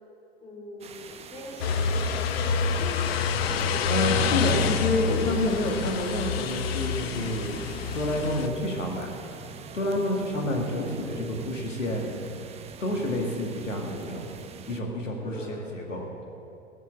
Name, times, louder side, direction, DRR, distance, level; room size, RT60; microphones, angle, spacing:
voice 1, 0.4-4.0 15.2-15.8, left 1 dB, 15° left, -2 dB, 3.5 m, -40 dB
sound 1, 0.8-14.8, right 6 dB, 15° right, 0.7 m, -42 dB
sound 2, 1.6-8.5, left 6 dB, 50° left, 0.9 m, -27 dB
voice 2, 3.9-12.2 12.8-14.3 14.7-16.1, left 1 dB, 80° left, 0 dB, 2.1 m, -29 dB
sound 3, 5.7-11.2, right 2 dB, 35° right, 3.4 m, -49 dB
19.0 x 7.6 x 7.5 m, 2.8 s
figure-of-eight pair, 90°, 37 cm